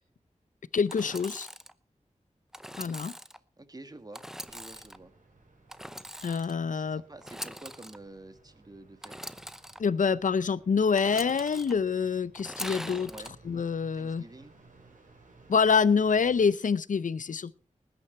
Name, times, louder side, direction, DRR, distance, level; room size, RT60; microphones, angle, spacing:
voice 1, 0.7-1.5 2.8-3.1 6.2-7.0 9.8-13.1 13.4-14.2 15.5-17.6, left 5 dB, 85° left, 0.6 m, -26 dB
Engine / Sawing, 0.9-1.7 2.5-3.4 4.1-5.0 5.7-6.6 7.2-8.0 9.0-9.8 11.0-11.7 12.3-13.3, equal, 5° right, 0.7 m, -42 dB
voice 2, 3.6-5.1 6.7-9.3 13.1-13.3 13.9-14.6, right 2 dB, 30° right, 1.6 m, -49 dB
sound 1, 4.4-16.4, right 3 dB, 85° right, 4.7 m, -59 dB
19.5 x 9.8 x 4.3 m
wide cardioid pair, 85°, 13 cm